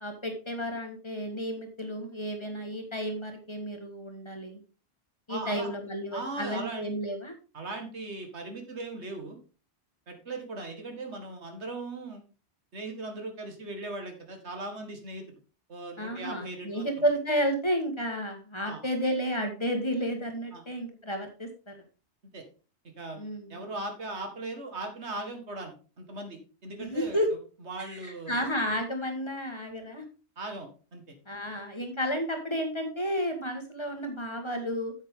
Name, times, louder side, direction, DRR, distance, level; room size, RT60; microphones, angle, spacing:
voice 1, 0.0-4.6 5.3-7.3 16.0-21.7 23.2-23.6 26.8-27.3 27.9-30.0 31.3-34.9, equal, 25° left, 3 dB, 1.8 m, -32 dB
voice 2, 5.3-5.7 6.1-6.9 7.5-9.4 10.1-12.2 12.7-15.4 15.7-16.9 18.6-18.8 20.5-20.6 22.3-22.4 23.0-23.2 23.5-27.2 27.6-28.4 30.4-31.2, right 2 dB, 85° right, 4 dB, 2.2 m, -38 dB
8.9 x 8.0 x 3.7 m, 0.35 s
omnidirectional pair, 1.1 m